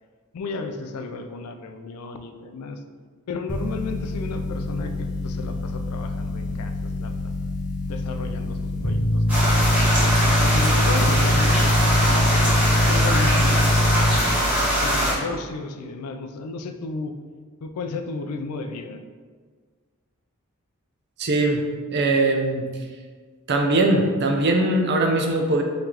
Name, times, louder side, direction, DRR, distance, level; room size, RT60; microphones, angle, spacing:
voice 1, 0.3-2.8 3.3-7.1 7.9-8.6 8.8-9.6 10.1-11.7 12.0-12.4 12.9-14.5 14.8-17.1 17.6-19.0, left 3 dB, 85° left, 7 dB, 0.4 m, -33 dB
sound 1, 3.5-14.2, left 1 dB, 35° left, 0.6 m, -23 dB
sound 2, 9.3-15.1, equal, 5° right, 1.2 m, -22 dB
voice 2, 21.2-21.6 21.9-22.6 23.5-25.6, right 2 dB, 50° right, 3 dB, 0.5 m, -20 dB
4.0 x 3.2 x 2.8 m, 1.5 s
head